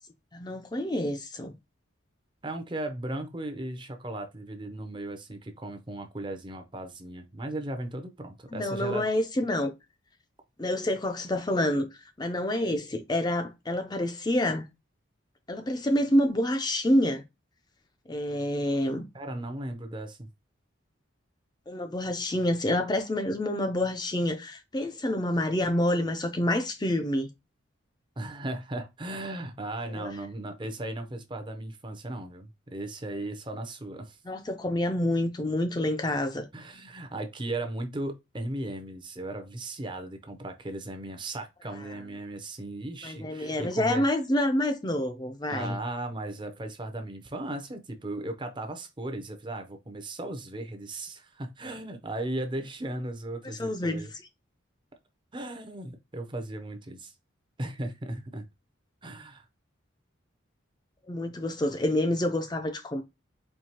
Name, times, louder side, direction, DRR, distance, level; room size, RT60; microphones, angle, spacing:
voice 1, 0.3-1.5 8.5-9.7 10.6-11.9 12.2-14.7 15.5-17.2 18.1-19.1 21.7-27.3 30.0-30.1 34.3-36.5 43.0-45.8 53.6-54.1 61.1-63.0, left 1 dB, 20° left, 0.4 m, -27 dB
voice 2, 2.4-9.0 19.1-20.3 28.2-34.2 36.5-44.0 45.5-54.1 55.3-57.1 57.6-58.5 59.0-59.4, right 1 dB, 25° right, 0.6 m, -36 dB
4.6 x 2.8 x 2.8 m
head